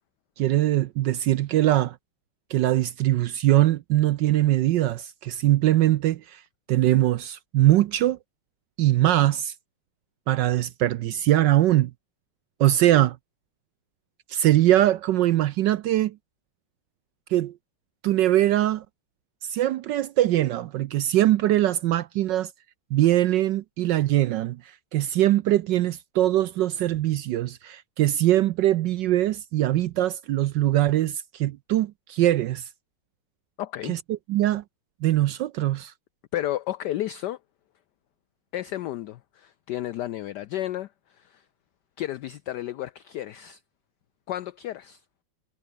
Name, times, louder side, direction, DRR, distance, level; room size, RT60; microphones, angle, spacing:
voice 1, 0.4-2.0 2.5-6.4 6.7-8.2 8.8-9.5 10.3-11.9 12.6-13.2 14.3-16.2 17.3-17.5 18.0-18.8 19.4-22.5 22.9-24.6 24.9-32.6 33.9-34.0 34.3-34.6 35.0-35.9, right 14 dB, 75° right, 1.1 m, -22 dB
voice 2, 33.6-34.0 36.3-37.4 38.5-41.4 42.0-43.6 44.3-45.0, left 13 dB, 85° left, 0.9 m, -32 dB
omnidirectional pair, 2.4 m